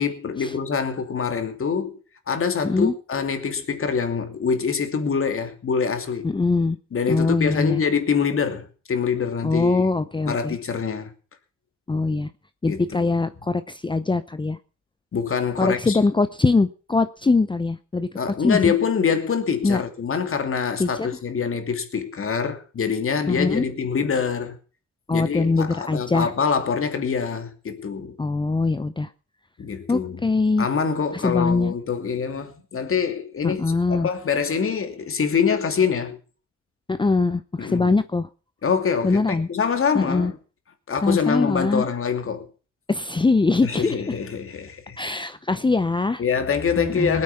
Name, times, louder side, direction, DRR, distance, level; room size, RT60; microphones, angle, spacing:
voice 1, 0.0-1.9 2.3-6.3 6.9-9.8 10.3-11.1 12.6-13.1 15.1-16.0 18.2-24.6 25.1-28.2 29.6-30.2 30.6-36.2 37.6-37.9 38.6-40.4 40.9-42.5 43.6-45.0 46.2-47.2, left 6 dB, 45° left, 2.8 m, -25 dB
voice 2, 2.6-2.9 6.2-6.8 7.1-7.8 9.4-10.6 11.9-12.3 12.6-14.6 15.6-18.1 18.4-18.7 19.6-19.8 20.8-21.1 23.3-23.6 25.1-26.3 28.2-29.1 29.9-30.7 31.1-31.7 33.4-34.1 36.9-38.3 39.0-39.5 39.9-40.3 41.0-41.9 42.9-44.0 45.0-46.2 46.8-47.2, left 3 dB, 15° left, 0.7 m, -22 dB
19.5 x 8.8 x 5.8 m
cardioid pair, 90°, 30 cm